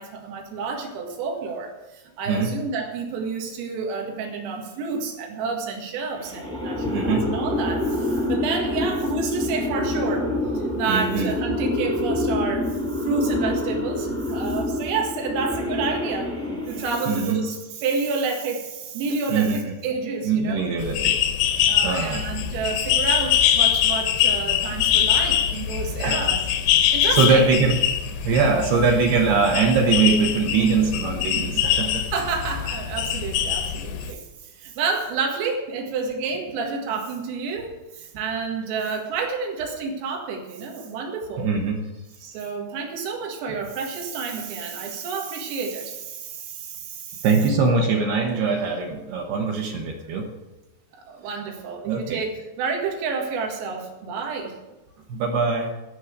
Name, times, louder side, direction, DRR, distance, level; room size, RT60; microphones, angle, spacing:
voice 1, 0.0-10.3 10.6-16.3 16.7-20.7 21.7-26.4 26.9-27.5 32.1-34.3 34.5-41.5 42.2-47.3 51.1-54.6, right 4 dB, 85° right, 2 dB, 4.6 m, -29 dB
sound 1, 6.2-17.3, left 1 dB, 5° left, 0.8 m, -27 dB
voice 2, 6.8-7.3 10.9-11.3 17.1-17.5 19.3-19.7 20.2-21.1 21.8-22.2 26.0-26.2 27.1-27.8 28.2-32.0 41.4-41.8 47.2-50.3 51.8-52.2 55.1-55.7, right 4 dB, 70° right, 1 dB, 2.6 m, -22 dB
sound 2, 20.8-34.1, left 10 dB, 75° left, 2.4 m, -23 dB
13.0 x 6.4 x 8.0 m, 1.1 s
omnidirectional pair, 5.8 m